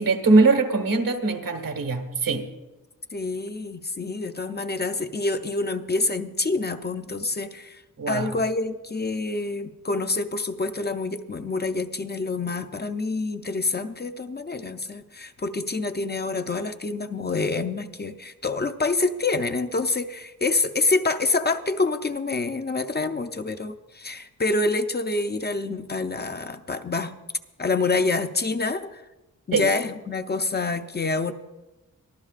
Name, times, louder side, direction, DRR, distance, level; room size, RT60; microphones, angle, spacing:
voice 1, 0.0-2.5 8.0-8.3 29.5-29.7, right 3 dB, 80° right, 5 dB, 1.5 m, -21 dB
voice 2, 3.1-7.8 8.1-27.1 27.6-29.0 29.5-31.3, left 3 dB, 30° left, 7 dB, 0.5 m, -27 dB
23.0 x 14.5 x 2.5 m, 1.1 s
wide cardioid pair, 150°, 34 cm